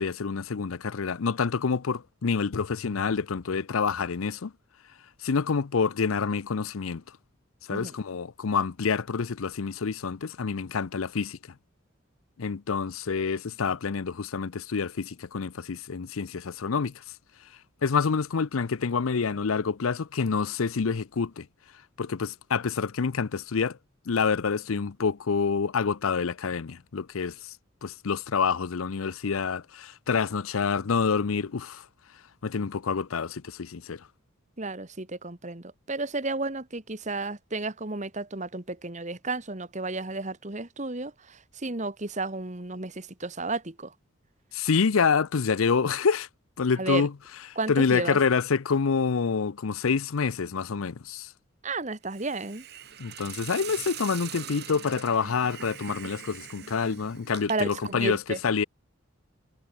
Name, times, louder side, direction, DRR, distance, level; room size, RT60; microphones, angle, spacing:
voice 1, 0.0-4.5 5.2-7.0 7.7-11.4 12.4-16.9 17.8-21.5 22.0-23.8 24.1-27.5 27.8-31.8 32.4-34.0 44.5-46.3 46.6-47.1 47.7-51.3 53.0-58.6, left 5 dB, 85° left, 0.6 m, -27 dB
voice 2, 34.6-43.9 46.8-47.1 47.6-48.2 51.6-52.6 57.5-58.4, right 3 dB, 35° right, 1.6 m, -32 dB
Hiss, 52.1-57.9, right 9 dB, 50° right, 6.8 m, -42 dB
head